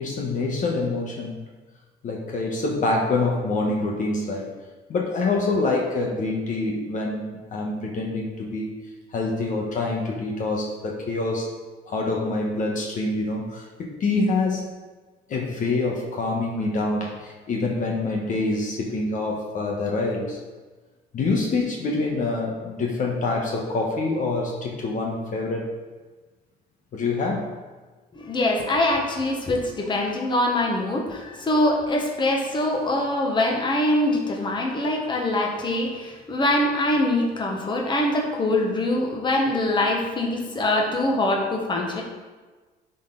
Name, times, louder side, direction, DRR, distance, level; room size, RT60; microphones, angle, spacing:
voice 1, 0.0-1.4 2.0-4.5 4.9-8.8 9.1-11.5 11.9-14.7 15.3-20.4 21.1-25.7 26.9-27.5, left 3 dB, 50° left, -1 dB, 1.2 m, -26 dB
voice 2, 28.2-42.0, left 1 dB, 25° left, 0 dB, 1.4 m, -23 dB
12.0 x 4.0 x 3.9 m, 1.3 s
cardioid pair, 110°, 17 cm